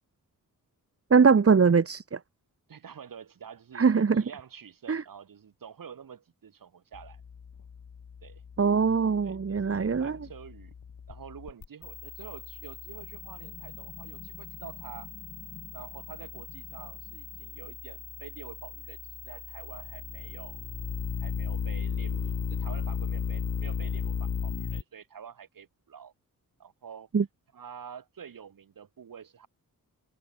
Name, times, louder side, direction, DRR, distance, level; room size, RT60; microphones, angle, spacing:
voice 1, 1.1-2.2 3.8-4.2 4.9-5.0 8.6-10.2 27.1-27.2, right 5 dB, 40° right, 1.9 m, -22 dB
voice 2, 2.7-7.2 8.2-8.4 9.2-10.7 11.1-15.1 15.7-19.0 19.2-20.6 21.2-26.1 26.6-27.1 27.5-29.5, right 7 dB, 75° right, 7.1 m, -47 dB
sound 1, 6.9-24.8, left 6 dB, 60° left, 2.7 m, -37 dB
cardioid pair, 90°, 34 cm